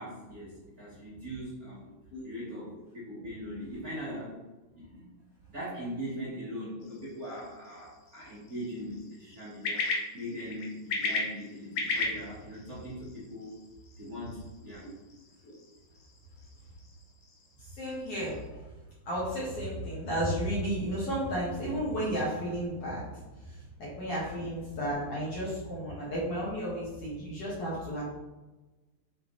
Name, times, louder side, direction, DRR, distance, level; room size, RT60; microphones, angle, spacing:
voice 1, 0.0-1.9 2.2-4.4 4.7-5.1 5.5-9.9 10.1-13.6 14.0-14.8, equal, 40° right, -8 dB, 1.4 m, -40 dB
sound 1, 6.8-18.5, left 3 dB, 65° left, 1.8 m, -38 dB
voice 2, 17.7-18.7 19.0-23.1 23.4-28.0, equal, 50° left, -7 dB, 2.1 m, -33 dB
5.6 x 4.5 x 3.9 m, 1.1 s
omnidirectional pair, 4.0 m